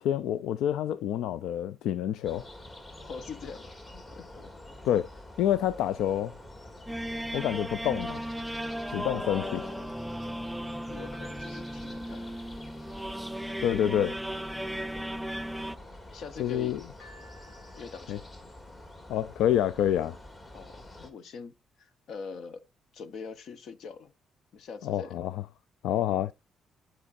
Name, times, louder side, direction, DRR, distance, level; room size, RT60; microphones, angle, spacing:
voice 1, 0.0-2.5 4.8-5.1 5.4-6.3 7.3-8.2 8.9-9.6 13.6-14.2 16.4-16.8 18.1-18.2 19.1-20.2 24.8-25.4 25.8-26.3, left 10 dB, 85° left, 0.3 m, -27 dB
sound 1, 2.2-21.1, left 1 dB, 30° left, 2.1 m, -47 dB
voice 2, 3.0-3.7 4.1-4.8 9.0-9.9 10.9-12.4 14.9-15.1 16.1-16.8 17.7-18.3 20.5-22.6 22.9-24.1 24.5-25.3, left 5 dB, 70° left, 1.0 m, -43 dB
sound 2, 6.9-15.8, right 1 dB, 5° right, 0.3 m, -36 dB
sound 3, 17.0-20.2 20.9-21.0, left 1 dB, 45° left, 3.6 m, -59 dB
12.5 x 4.4 x 2.5 m
cardioid pair, 90°, 0 cm